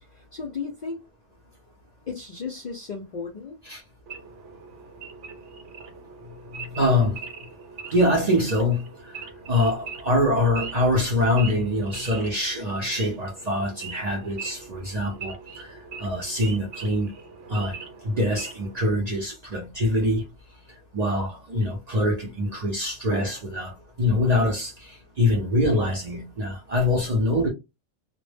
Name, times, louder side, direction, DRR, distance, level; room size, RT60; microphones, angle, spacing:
voice 1, 0.1-1.0 2.1-3.6 23.0-23.1, left 5 dB, 65° left, 0.4 m, -35 dB
Wild animals / Idling, 4.1-18.8, right 5 dB, 75° right, 0.9 m, -41 dB
voice 2, 6.8-7.2 7.9-8.8 9.5-15.7 16.0-17.1 17.5-17.8 18.0-20.2 20.9-27.5, left 1 dB, 50° right, 0.5 m, -24 dB
2.1 x 2.0 x 3.2 m
omnidirectional pair, 1.3 m